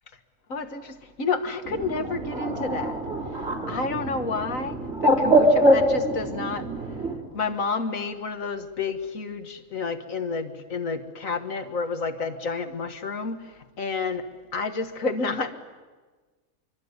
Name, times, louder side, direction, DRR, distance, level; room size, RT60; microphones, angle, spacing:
voice 1, 0.5-3.0 3.7-4.8 5.0-6.7 7.3-13.5 13.8-14.3 14.5-15.5, left 4 dB, 70° left, 8 dB, 1.9 m, -30 dB
Bird, 1.6-7.2, right 1 dB, 50° right, 4.2 m, -24 dB
24.0 x 24.0 x 9.7 m, 1.4 s
omnidirectional pair, 1.5 m